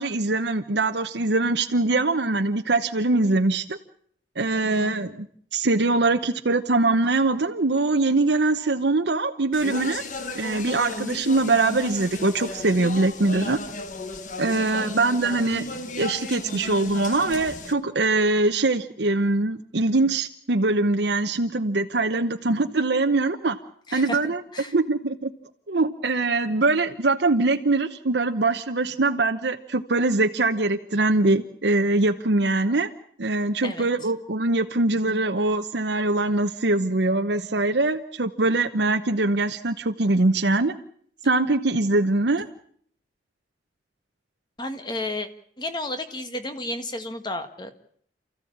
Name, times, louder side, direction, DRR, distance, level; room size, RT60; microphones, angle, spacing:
voice 1, 0.0-3.8 4.4-5.3 5.5-10.0 10.3-13.6 14.4-15.6 16.0-23.6 23.9-25.3 25.7-32.9 33.2-40.7 41.2-42.5, right 2 dB, 70° right, 6 dB, 0.9 m, -23 dB
voice 2, 4.6-5.0 14.5-14.9 23.9-24.7 33.6-33.9 44.6-45.3 45.6-47.7, left 1 dB, 25° left, 8 dB, 1.7 m, -33 dB
Speech, 9.5-17.7, left 2 dB, 45° left, 1.5 m, -35 dB
29.0 x 14.5 x 8.7 m, 0.64 s
head